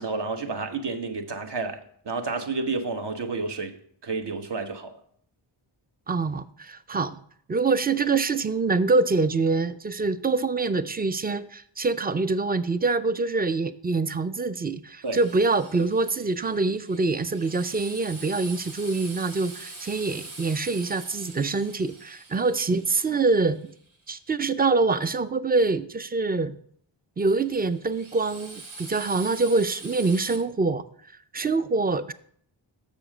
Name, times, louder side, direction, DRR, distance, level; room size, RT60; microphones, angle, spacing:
voice 1, 0.0-3.7 4.0-4.9 15.0-15.2, right 3 dB, 55° right, 6 dB, 1.0 m, -30 dB
voice 2, 6.1-7.2 7.5-23.7 24.1-26.5 27.2-30.8 31.3-32.1, right 3 dB, 20° right, 14 dB, 0.4 m, -25 dB
Drill, 15.0-24.0 27.4-30.4, right 3 dB, 75° right, 1.5 m, -44 dB
7.0 x 6.4 x 5.0 m, 0.63 s
wide cardioid pair, 65°, 49 cm